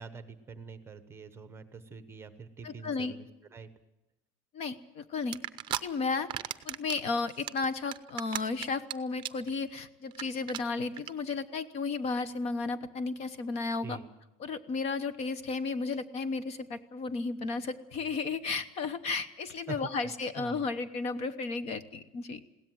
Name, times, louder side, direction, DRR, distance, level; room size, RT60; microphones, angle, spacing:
voice 1, 0.0-3.7 13.8-14.1 19.7-20.6, right 5 dB, 15° right, 10 dB, 1.0 m, -45 dB
voice 2, 2.6-3.1 4.5-5.4 5.8-6.3 6.6-14.0 14.4-22.4, left 4 dB, 40° left, 13 dB, 1.0 m, -33 dB
sound 1, 5.3-5.8 6.1-7.0 7.3-8.9 9.2-9.5 9.8-9.9 10.1-10.2 10.5-10.6 11.0-11.1, right 12 dB, 30° right, 0.7 m, -34 dB
21.5 x 17.0 x 7.7 m, 0.95 s
cardioid pair, 170°, 16 cm